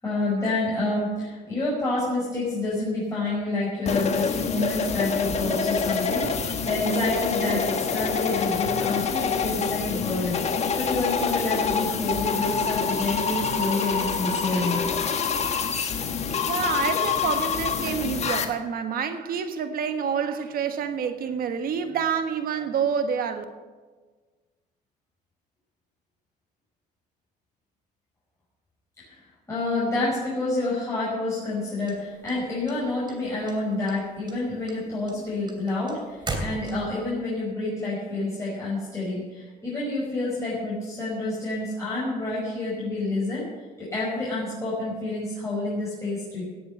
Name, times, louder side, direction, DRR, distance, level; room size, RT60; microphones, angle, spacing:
voice 1, 0.0-14.8 29.0-29.2 29.5-43.5 43.8-46.4, left 2 dB, 15° left, 5.6 m, -28 dB
sound 1, 3.8-18.4, left 5 dB, 40° left, 1.4 m, -26 dB
voice 2, 16.5-23.4, right 7 dB, 60° right, 1.5 m, -28 dB
sound 2, 31.9-33.1 33.5-34.0 34.3-37.1, right 2 dB, 25° right, 2.9 m, -35 dB
17.5 x 7.9 x 6.6 m
cardioid pair, 110°, 17 cm